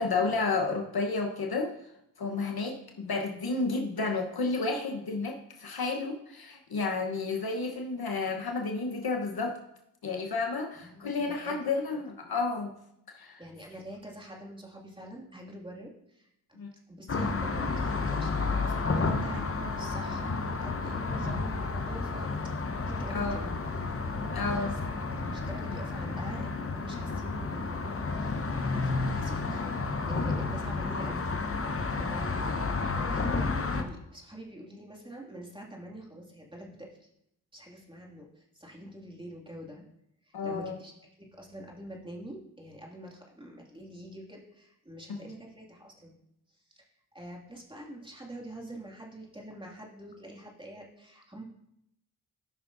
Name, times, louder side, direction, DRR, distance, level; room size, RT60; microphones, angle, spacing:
voice 1, 0.0-1.7 2.2-9.6 10.0-12.7 13.1-13.4 16.5-16.7 23.1-23.4 24.3-24.7 40.3-40.7, left 3 dB, 55° left, 2 dB, 1.2 m, -31 dB
voice 2, 10.8-11.6 13.4-22.4 22.8-23.6 24.1-24.8 25.1-29.8 30.1-31.3 32.0-37.1 37.5-39.8 40.2-40.9 41.2-46.2 46.5-46.9 47.1-51.4, right 1 dB, 10° right, -2 dB, 2.3 m, -45 dB
sound 1, 17.1-33.8, left 3 dB, 30° left, 1.0 m, -31 dB
13.0 x 5.8 x 2.7 m, 0.78 s
supercardioid pair, 50°, 45 cm